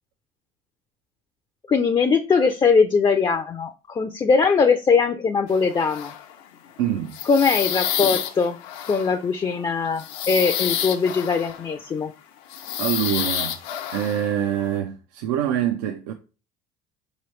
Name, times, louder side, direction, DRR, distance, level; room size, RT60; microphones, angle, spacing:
voice 1, 1.7-6.1 7.3-8.6 8.9-12.1, left 5 dB, 25° left, 0.4 m, -21 dB
sound 1, 5.5-6.5 6.8-11.9 12.5-14.8, left 10 dB, 80° left, 0.6 m, -29 dB
voice 2, 6.8-7.2 12.8-13.6 13.9-16.1, right 10 dB, 85° right, 0.4 m, -25 dB
4.3 x 3.0 x 3.1 m
supercardioid pair, 85°, 20 cm